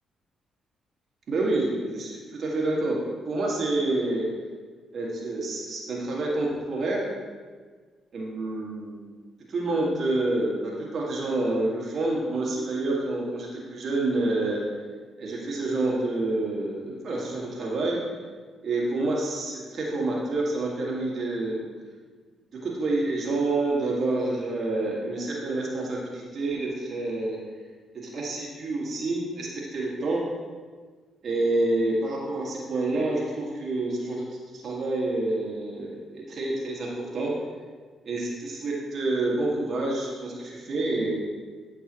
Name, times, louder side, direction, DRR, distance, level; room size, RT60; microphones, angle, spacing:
voice 1, 1.3-3.0 3.3-4.3 4.9-7.0 8.1-9.0 9.5-14.6 15.2-18.0 18.6-21.6 22.6-27.4 28.0-30.2 31.2-34.3 34.5-37.3 38.1-41.1, right 2 dB, 60° right, -3 dB, 1.9 m, -28 dB
8.8 x 6.0 x 3.0 m, 1.5 s
hypercardioid pair, 50°, 0 cm